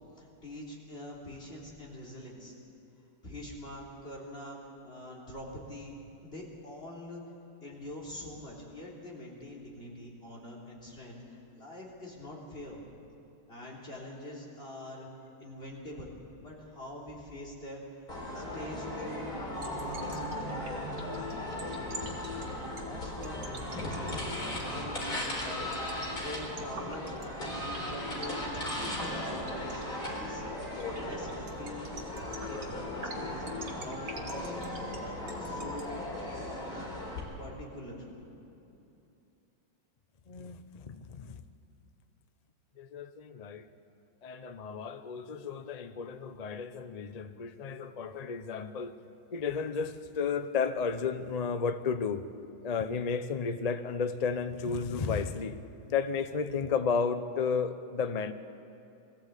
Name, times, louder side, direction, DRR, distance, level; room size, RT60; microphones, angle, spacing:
voice 1, 0.2-2.5 3.2-4.6 4.8-5.9 6.2-7.2 7.6-12.9 13.5-15.1 15.4-17.8 18.3-22.1 22.6-24.3 24.5-28.4 28.8-31.9 32.2-34.9 35.2-36.3 36.7-36.9 37.4-39.0, left 1 dB, 30° left, -2 dB, 3.7 m, -45 dB
sound 1, 18.1-37.2, left 1 dB, 50° left, 4.8 m, -37 dB
sound 2, 19.4-35.8, right 4 dB, 50° right, 2.3 m, -44 dB
voice 2, 40.3-41.4 42.8-43.7 44.2-48.9 49.3-52.2 52.6-55.6 55.9-58.3, left 5 dB, 90° left, 9 dB, 0.3 m, -33 dB
21.5 x 15.0 x 8.3 m, 2.8 s
omnidirectional pair, 2.0 m